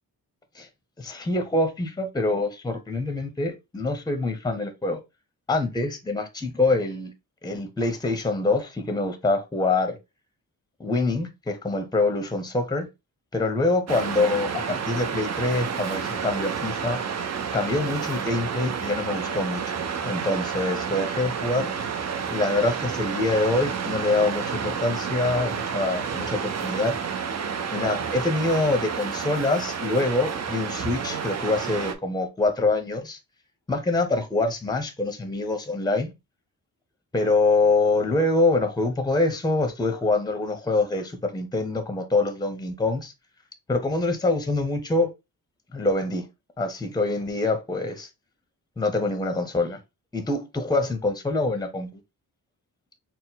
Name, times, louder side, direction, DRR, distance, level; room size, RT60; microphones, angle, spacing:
voice 1, 1.0-5.0 5.5-7.1 7.4-10.0 10.8-12.9 13.3-17.0 17.5-21.7 22.3-27.0 27.7-33.2 33.7-36.1 37.1-43.1 43.7-45.1 45.7-46.3 46.6-48.1 48.8-49.8 50.1-52.0, left 2 dB, 10° left, 0.7 m, -25 dB
Waves surf, 13.9-31.9, right 6 dB, 45° right, 0.6 m, -30 dB
4.3 x 2.1 x 3.9 m
wide cardioid pair, 125°, 37 cm